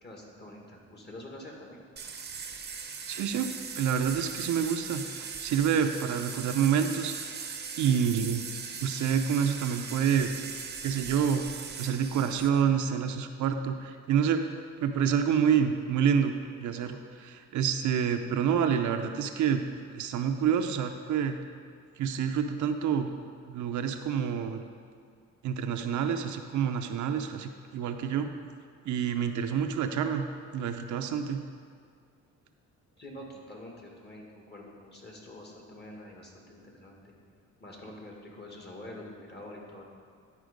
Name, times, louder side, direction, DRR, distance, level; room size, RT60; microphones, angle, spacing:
voice 1, 0.0-1.8 33.0-37.1 37.6-39.8, left 1 dB, 35° left, 0 dB, 1.8 m, -46 dB
sound 1, 2.0-12.5, right 6 dB, 35° right, 0.8 m, -39 dB
voice 2, 3.1-7.5 7.8-8.4 8.8-10.3 10.8-11.5 11.8-14.4 14.8-16.3 16.6-21.4 22.0-23.1 23.5-24.6 25.4-28.3 28.8-30.3 30.5-31.4, right 7 dB, 75° right, 6 dB, 0.7 m, -28 dB
10.5 x 4.5 x 5.1 m, 2.1 s
cardioid pair, 90°, 30 cm